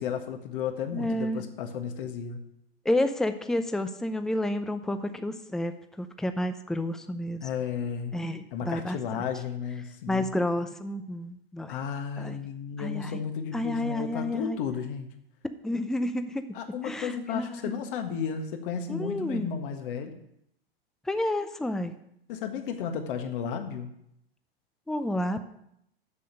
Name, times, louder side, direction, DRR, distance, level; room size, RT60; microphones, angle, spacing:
voice 1, 0.0-2.4 7.4-8.2 8.5-10.3 11.7-15.1 16.5-20.1 22.3-23.9, left 7 dB, 60° left, 6 dB, 1.5 m, -33 dB
voice 2, 0.9-1.5 2.9-5.7 6.0-7.4 8.1-9.0 10.1-11.7 12.2-12.4 12.8-13.2 13.5-14.6 15.4-16.4 16.8-17.7 18.9-19.5 21.1-21.9 24.9-25.5, left 1 dB, ahead, 9 dB, 0.5 m, -30 dB
7.5 x 6.8 x 6.6 m, 0.77 s
hypercardioid pair, 100°, 30 cm